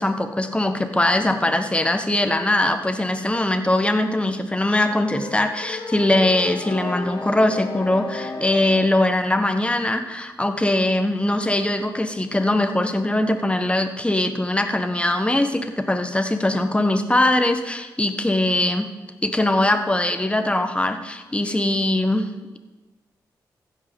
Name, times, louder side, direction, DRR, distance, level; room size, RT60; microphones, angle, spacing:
voice 1, 0.0-18.9 19.2-22.6, left 1 dB, 15° left, 7 dB, 1.3 m, -21 dB
sound 1, 4.9-8.9, left 3 dB, 55° left, 1.7 m, -33 dB
15.5 x 5.5 x 5.3 m, 1.2 s
supercardioid pair, 40°, 9 cm